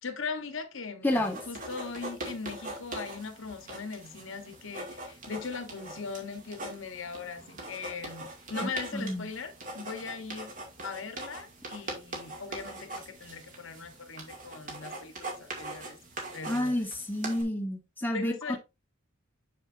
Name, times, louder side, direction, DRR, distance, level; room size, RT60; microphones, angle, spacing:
voice 1, 0.0-10.5 10.8-16.0 16.3-16.7 18.1-18.6, left 4 dB, 65° left, 1.1 m, -39 dB
voice 2, 1.0-1.4 8.6-9.3 16.5-18.6, left 1 dB, 10° left, 1.0 m, -30 dB
sound 1, 1.1-17.4, right 2 dB, 40° right, 2.3 m, -42 dB
7.0 x 7.0 x 2.6 m
head